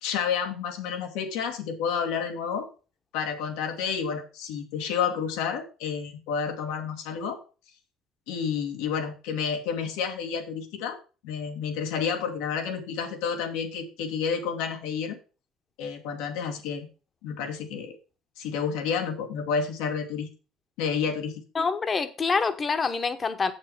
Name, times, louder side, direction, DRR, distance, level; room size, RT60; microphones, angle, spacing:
voice 1, 0.0-2.7 3.1-7.4 8.3-11.0 11.2-15.2 15.8-16.9 17.2-18.0 18.4-20.3 20.8-21.3, left 6 dB, 90° left, 1.9 m, -30 dB
voice 2, 21.5-23.5, left 4 dB, 25° left, 1.0 m, -26 dB
7.6 x 6.4 x 5.4 m
cardioid pair, 125°, 0 cm